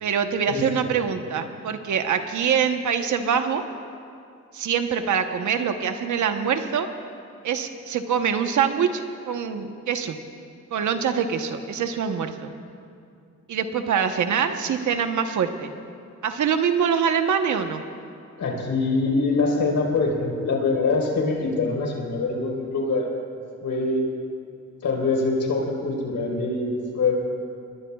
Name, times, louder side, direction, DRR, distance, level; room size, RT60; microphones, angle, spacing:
voice 1, 0.0-3.6 4.5-6.9 7.4-10.2 10.7-12.5 13.5-15.7 16.2-17.8, right 7 dB, 85° right, 7 dB, 1.1 m, -24 dB
voice 2, 18.4-23.1 23.6-24.1 24.8-27.1, left 3 dB, 75° left, -1 dB, 4.4 m, -24 dB
27.5 x 21.0 x 2.4 m, 2.4 s
cardioid pair, 80°, 29 cm